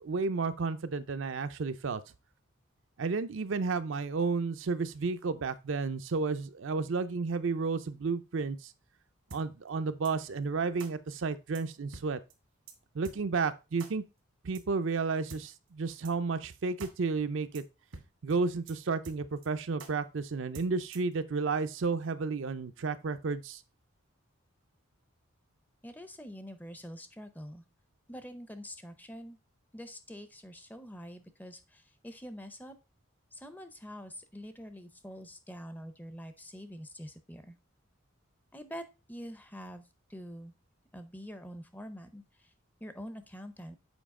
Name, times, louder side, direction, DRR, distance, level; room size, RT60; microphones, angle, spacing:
voice 1, 0.0-2.0 3.0-8.7 9.3-12.2 12.9-14.0 14.4-17.6 18.2-23.6, right 4 dB, 70° right, 0.5 m, -32 dB
sound 1, 9.3-9.4 10.0-10.1 10.8-10.9 11.5-11.6 11.9-12.1 12.3-12.4 12.7-12.8 13.0-13.2 13.8-13.9 14.5-14.6 15.3-15.4 16.0-16.1 16.4-16.5 16.8-16.9 17.2-17.3 17.5-17.6 17.9-18.1 18.3-18.4 18.7-18.8 19.0-19.5 19.8-19.9 20.5-21.1, right 3 dB, 85° right, 1.4 m, -46 dB
voice 2, 25.8-27.6 28.1-29.4 29.7-32.8 33.3-37.6 38.5-40.5 40.9-42.5 42.8-43.8, equal, 10° left, 0.5 m, -45 dB
7.2 x 4.8 x 3.6 m
head